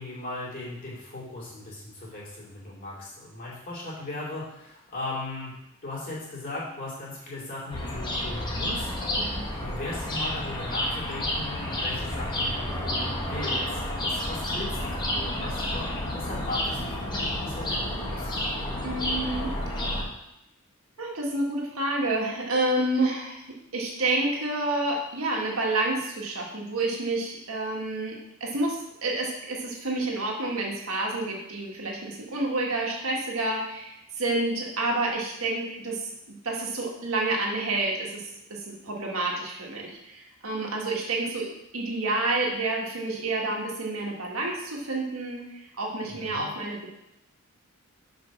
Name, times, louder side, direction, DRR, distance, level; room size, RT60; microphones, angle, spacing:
voice 1, 0.0-5.5 5.8-18.4 46.1-46.5, left 2 dB, 40° left, -6 dB, 2.8 m, -38 dB
sound 1, 7.7-20.0, left 1 dB, 20° left, 1.3 m, -30 dB
voice 2, 18.8-19.5 21.0-45.4 45.8-47.0, right 2 dB, 80° right, -1 dB, 1.7 m, -29 dB
6.1 x 5.2 x 5.9 m, 0.84 s
head